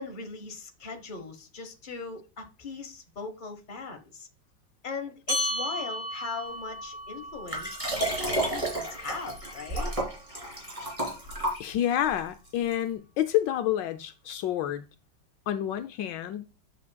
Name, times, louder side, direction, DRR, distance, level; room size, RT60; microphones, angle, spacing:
voice 1, 0.0-4.3 4.8-9.9, left 4 dB, 30° left, 1.2 m, -40 dB
sound 1, 5.3-10.1, equal, 30° right, 4.7 m, -35 dB
Liquid, 7.5-12.1 12.7-12.8, right 1 dB, 15° right, 3.2 m, -31 dB
voice 2, 11.6-14.8 15.5-16.4, left 11 dB, 75° left, 1.2 m, -28 dB
10.5 x 6.7 x 2.3 m
omnidirectional pair, 2.0 m